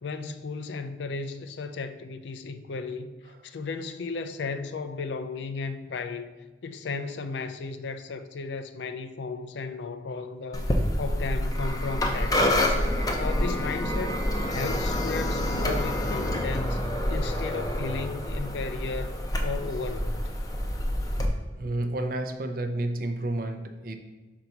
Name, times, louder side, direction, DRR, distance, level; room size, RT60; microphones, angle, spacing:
voice 1, 0.0-3.1 3.4-6.3 6.6-10.7 11.0-14.2 14.5-16.8 17.1-19.2 19.4-20.2, left 4 dB, 75° left, 0.4 m, -35 dB
sound 1, 10.5-21.3, left 1 dB, 20° left, 0.6 m, -27 dB
voice 2, 21.6-24.0, right 1 dB, 50° right, 0.5 m, -30 dB
5.7 x 4.0 x 4.5 m
head